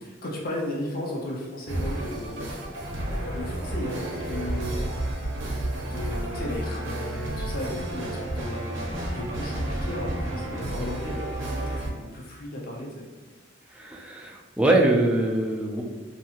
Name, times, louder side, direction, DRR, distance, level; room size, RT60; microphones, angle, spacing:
voice 1, 0.0-2.6 3.1-4.8 5.9-8.7 9.1-13.1, left 1 dB, 50° left, -3 dB, 0.6 m, -35 dB
sound 1, 1.7-11.9, right 1 dB, 70° right, 0.6 m, -31 dB
voice 2, 13.7-15.8, right 2 dB, 5° right, -2 dB, 0.3 m, -23 dB
2.9 x 2.6 x 2.4 m, 1.3 s
head